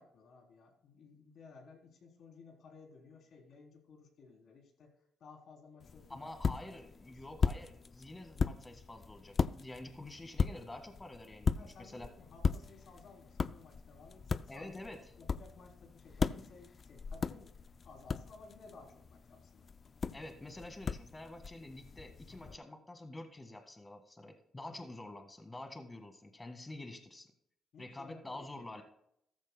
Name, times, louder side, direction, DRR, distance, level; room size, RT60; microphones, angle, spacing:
voice 1, 0.0-6.3 6.6-7.4 11.6-14.8 15.2-17.5 17.8-19.7 22.3-22.6 24.6-24.8 27.7-28.5 28.7-28.8, left 4 dB, 70° left, 1 dB, 3.4 m, -57 dB
sound 1, 5.8-22.6, left 5 dB, 40° left, 0.4 m, -38 dB
voice 2, 6.1-12.1 14.5-15.1 16.4-16.5 20.1-27.3 27.8-28.8, left 2 dB, 20° left, 6 dB, 1.7 m, -48 dB
14.0 x 13.5 x 2.2 m, 0.74 s
cardioid pair, 90°, 0 cm